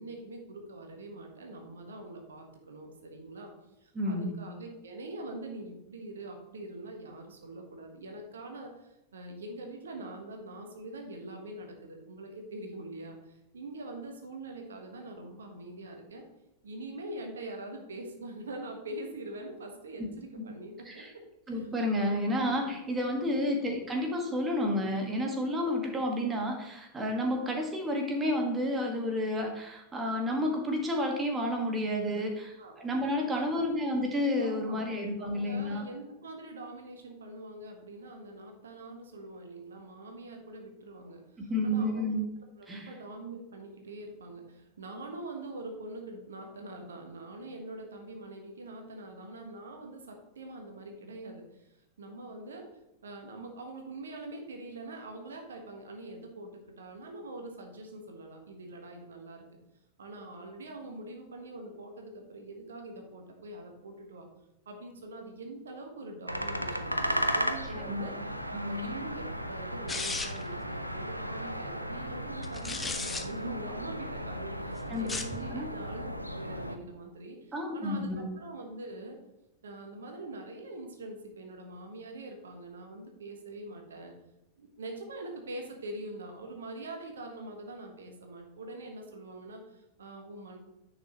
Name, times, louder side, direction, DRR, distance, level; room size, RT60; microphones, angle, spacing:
voice 1, 0.0-3.5 3.8-16.2 16.6-21.0 21.5-21.7 22.0-22.1 23.3-23.5 32.2-32.8 33.2-33.7 34.4-34.9 35.2-42.1 42.6-52.7 53.0-59.5 60.0-64.3 64.6-79.2 79.6-84.1 84.6-90.6, right 2 dB, 65° right, 3 dB, 1.3 m, -44 dB
voice 2, 3.9-4.4 20.4-20.5 20.8-21.1 21.5-35.8 41.5-42.2 42.7-42.9 67.7-68.1 68.5-68.8 74.9-75.1 75.5-75.7 77.5-78.2, left 1 dB, 15° right, 2 dB, 1.6 m, -30 dB
sound 1, 66.3-76.8, equal, 90° right, 0.5 m, -35 dB
sound 2, 69.9-70.5 72.4-73.2 75.0-75.4, left 4 dB, 15° left, 0.8 m, -35 dB
10.0 x 5.9 x 3.0 m, 0.91 s
figure-of-eight pair, 90°, 0 cm